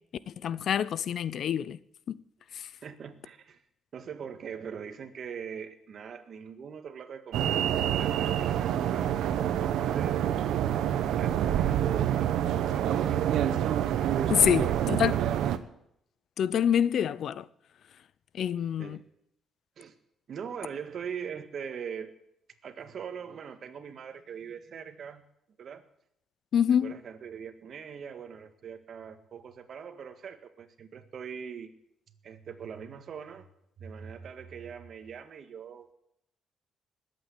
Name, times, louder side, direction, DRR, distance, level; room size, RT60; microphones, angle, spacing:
voice 1, 0.4-1.8 2.1-2.2 14.3-15.2 16.4-17.5 18.3-19.0 26.5-26.9, left 9 dB, 65° left, 0.6 m, -26 dB
voice 2, 2.8-3.6 3.9-9.2 9.6-10.6 11.0-13.2 14.4-15.3 18.8-19.0 19.8-20.0 20.3-22.1 22.6-25.2 25.6-25.8 26.7-31.7 32.2-33.5 33.8-35.9, right 7 dB, 60° right, 1.7 m, -42 dB
sound 1, 7.3-15.6, right 10 dB, 80° right, 1.0 m, -27 dB
20.5 x 8.6 x 8.3 m
cardioid pair, 90°, 0 cm